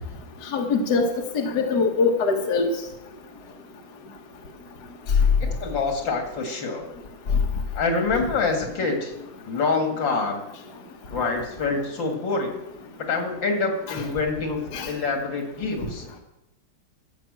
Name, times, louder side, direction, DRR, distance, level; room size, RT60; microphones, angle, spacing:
voice 1, 0.5-1.1 1.3-2.7 13.9-14.0 14.7-14.9, left 4 dB, 65° left, 2 dB, 1.8 m, -22 dB
voice 2, 5.4-6.9 7.7-9.1 9.5-10.4 11.1-12.6 13.0-16.1, left 4 dB, 80° left, 4 dB, 2.7 m, -26 dB
13.5 x 7.4 x 7.8 m, 0.91 s
omnidirectional pair, 2.0 m